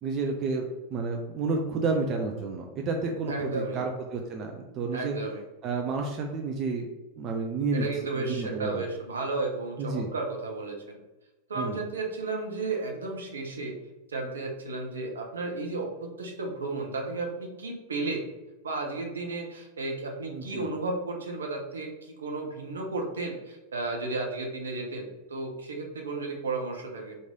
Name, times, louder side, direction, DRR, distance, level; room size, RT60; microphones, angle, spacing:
voice 1, 0.0-5.2 5.6-6.9 7.2-7.9 8.2-8.8 9.8-10.1 11.6-11.8 20.3-20.7, right 4 dB, 35° right, 2 dB, 0.4 m, -30 dB
voice 2, 3.3-3.8 4.9-5.4 7.7-11.0 11.5-13.8 14.1-18.3 18.6-27.2, right 3 dB, 70° right, 1 dB, 0.7 m, -33 dB
3.1 x 2.6 x 3.7 m, 1.1 s
figure-of-eight pair, 90°, 0 cm